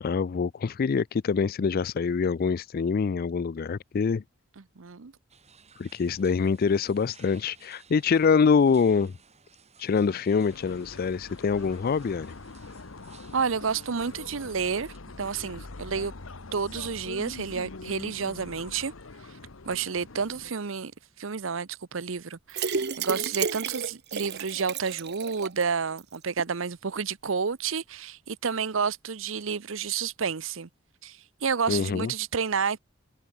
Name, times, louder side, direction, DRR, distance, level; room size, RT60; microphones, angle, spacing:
voice 1, 0.0-4.2 5.8-9.1 9.8-12.3 31.7-32.1, left 5 dB, 50° left, 0.4 m, -25 dB
voice 2, 4.8-5.1 13.3-16.1 16.5-18.9 19.7-20.9 21.2-30.7 31.0-32.8, right 5 dB, 75° right, 0.8 m, -30 dB
sound 1, 5.3-15.0, right 6 dB, 35° right, 5.0 m, -57 dB
sound 2, 10.5-20.5, left 3 dB, 90° left, 1.3 m, -43 dB
sound 3, 22.5-25.6 26.0-26.1 26.4-26.5, right 5 dB, 55° right, 1.2 m, -31 dB
head